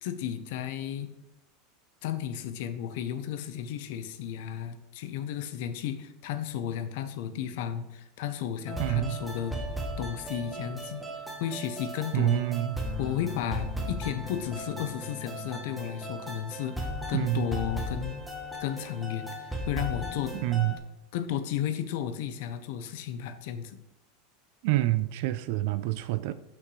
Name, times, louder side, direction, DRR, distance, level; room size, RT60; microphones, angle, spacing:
voice 1, 0.0-1.1 2.0-9.6 10.0-11.1 11.4-12.4 13.0-18.2 18.6-20.4 21.1-23.8, left 9 dB, 55° left, 0.6 m, -33 dB
sound 1, 8.7-20.8, equal, ahead, 0.9 m, -37 dB
voice 2, 8.8-9.2 12.1-12.8 17.1-17.5 20.3-20.8 24.6-26.3, right 16 dB, 50° right, 0.4 m, -27 dB
8.3 x 5.9 x 3.2 m
supercardioid pair, 180°, 0 cm